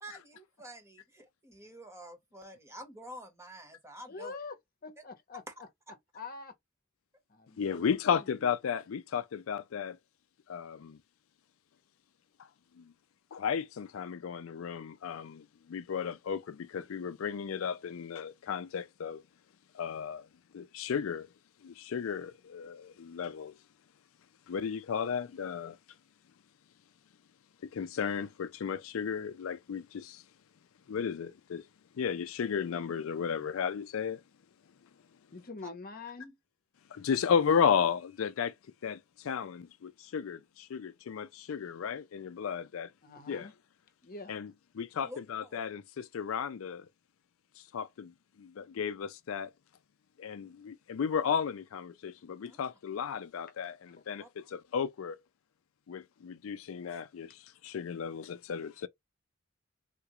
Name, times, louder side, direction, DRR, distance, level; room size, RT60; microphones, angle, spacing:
voice 1, 0.0-4.4 5.5-5.6 45.0-45.6 52.5-52.6 54.2-54.3, right 1 dB, 15° right, 1.1 m, -48 dB
voice 2, 4.1-4.6 4.8-5.4 6.1-6.5 7.3-8.5 35.3-36.4 43.0-43.5 44.0-44.3, left 4 dB, 45° left, 0.9 m, -44 dB
voice 3, 7.6-10.0 10.5-11.0 12.4-12.5 12.7-12.9 13.3-19.2 19.7-20.3 20.5-21.3 21.6-23.6 24.5-25.8 27.6-30.2 30.9-31.7 31.9-34.2 36.9-38.5 38.8-42.9 43.3-43.5 44.3-46.9 47.6-49.5 50.2-55.2 55.9-58.9, left 7 dB, 80° left, 0.4 m, -34 dB
3.7 x 2.4 x 2.9 m
head